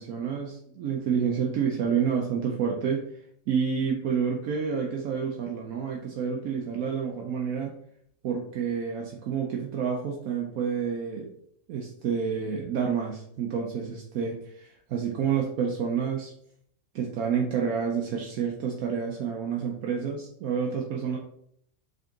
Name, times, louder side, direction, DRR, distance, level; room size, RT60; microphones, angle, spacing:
voice 1, 0.0-3.0 3.5-7.8 8.2-11.3 11.7-16.3 16.9-21.2, right 6 dB, 70° right, 0 dB, 1.0 m, -29 dB
3.9 x 3.6 x 3.5 m, 0.68 s
omnidirectional pair, 1.6 m